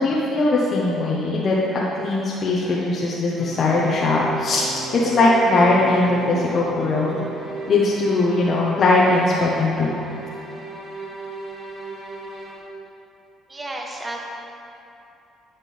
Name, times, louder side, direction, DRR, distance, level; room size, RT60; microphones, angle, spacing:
voice 1, 0.0-7.2 7.7-9.9, left 2 dB, 50° left, -5 dB, 1.0 m, -20 dB
sound 1, 3.4-12.6, right 3 dB, 45° right, 1.9 m, -35 dB
voice 2, 13.5-14.2, right 1 dB, 20° right, 0 dB, 1.1 m, -32 dB
10.0 x 5.9 x 3.4 m, 2.8 s
supercardioid pair, 80°, 0 cm